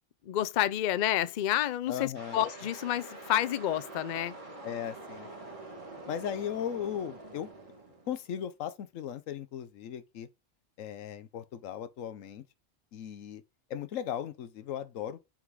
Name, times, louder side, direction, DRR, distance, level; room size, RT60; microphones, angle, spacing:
voice 1, 0.3-4.3, left 12 dB, 60° left, 0.5 m, -29 dB
voice 2, 1.9-2.4 4.6-5.3 6.1-7.5 8.1-10.3 10.8-12.4 12.9-13.4 13.7-15.2, left 9 dB, 85° left, 1.1 m, -37 dB
sound 1, 2.1-8.4, right 2 dB, 25° right, 1.7 m, -46 dB
6.0 x 3.8 x 4.7 m
omnidirectional pair, 1.3 m